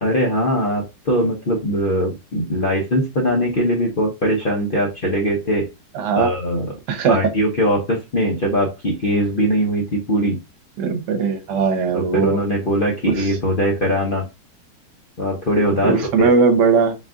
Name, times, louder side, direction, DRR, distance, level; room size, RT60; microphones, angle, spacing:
voice 1, 0.0-5.7 6.2-6.7 7.1-10.4 11.9-14.2 15.2-16.3, equal, 50° left, -1 dB, 0.6 m, -21 dB
voice 2, 5.9-6.3 6.9-7.2 10.8-12.4 13.1-13.3 15.8-17.0, right 5 dB, 75° right, 6 dB, 1.4 m, -18 dB
4.0 x 2.4 x 3.6 m, 0.25 s
omnidirectional pair, 1.9 m